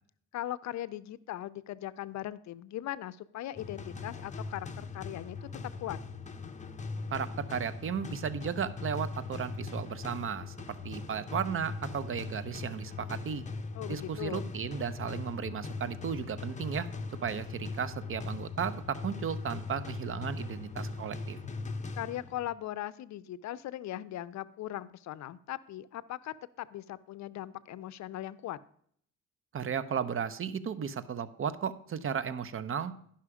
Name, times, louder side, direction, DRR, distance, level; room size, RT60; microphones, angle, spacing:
voice 1, 0.3-5.4 5.8-6.0 13.7-14.5 22.0-28.6, left 13 dB, 65° left, 17 dB, 0.5 m, -39 dB
sound 1, 3.6-22.5, left 3 dB, 25° left, 0.8 m, -40 dB
voice 2, 7.1-13.4 13.9-16.9 17.2-21.4 29.5-33.0, right 7 dB, 45° right, 14 dB, 0.7 m, -35 dB
11.0 x 5.7 x 4.9 m, 0.63 s
cardioid pair, 90°, 30 cm